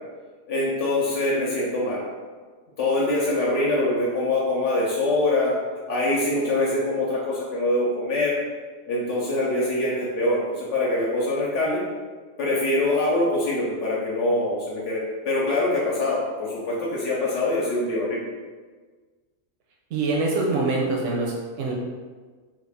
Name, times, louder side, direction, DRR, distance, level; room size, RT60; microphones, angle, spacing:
voice 1, 0.5-2.0 2.8-5.5 5.9-8.3 8.9-11.8 12.4-18.2, left 2 dB, 70° left, -5 dB, 1.0 m, -24 dB
voice 2, 19.9-21.7, right 3 dB, 75° right, -2 dB, 0.9 m, -24 dB
3.2 x 2.3 x 3.4 m, 1.4 s
omnidirectional pair, 1.3 m